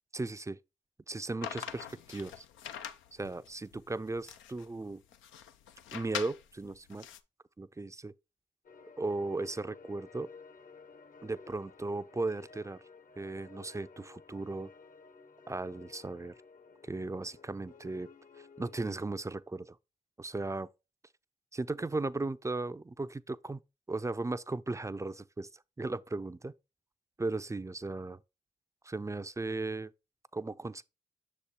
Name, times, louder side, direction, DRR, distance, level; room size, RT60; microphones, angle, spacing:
voice 1, 0.1-0.6 1.1-2.4 3.1-5.0 5.9-7.1 7.6-8.1 9.0-10.3 11.2-12.8 13.2-14.7 15.5-16.4 16.8-18.1 18.4-19.8 20.2-20.7 21.5-23.6 23.9-26.5 27.2-28.2 28.8-29.9 30.3-30.8, right 2 dB, 15° right, 0.4 m, -36 dB
sound 1, 1.4-7.2, left 9 dB, 80° left, 0.5 m, -44 dB
sound 2, 8.6-19.0, left 5 dB, 45° left, 0.9 m, -54 dB
6.5 x 4.2 x 3.5 m
supercardioid pair, 40°, 20 cm